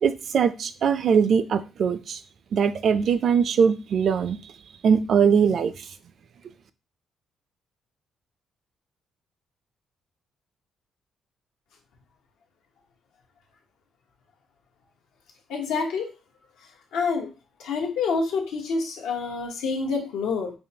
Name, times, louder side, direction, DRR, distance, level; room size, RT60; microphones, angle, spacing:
voice 1, 0.0-2.2 2.5-4.4 4.8-5.9, right 6 dB, 60° right, 12 dB, 0.4 m, -21 dB
voice 2, 15.5-16.1 16.9-17.3 17.6-20.5, left 4 dB, 90° left, 1 dB, 0.9 m, -27 dB
5.3 x 2.2 x 2.7 m, 0.31 s
cardioid pair, 90°, 0 cm